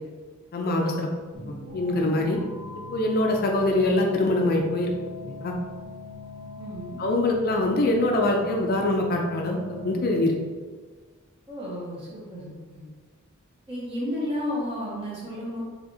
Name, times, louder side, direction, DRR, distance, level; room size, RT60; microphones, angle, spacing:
voice 1, 0.5-1.1 1.5-2.4 2.9-4.9 5.3-5.6 7.0-10.4, left 2 dB, 45° left, 1 dB, 0.4 m, -24 dB
sound 1, 1.3-10.6, left 2 dB, 60° right, 1.3 m, -41 dB
voice 2, 6.6-7.0 11.5-12.9 13.7-15.6, left 1 dB, 25° right, -7 dB, 1.4 m, -32 dB
4.8 x 3.4 x 2.7 m, 1.5 s
head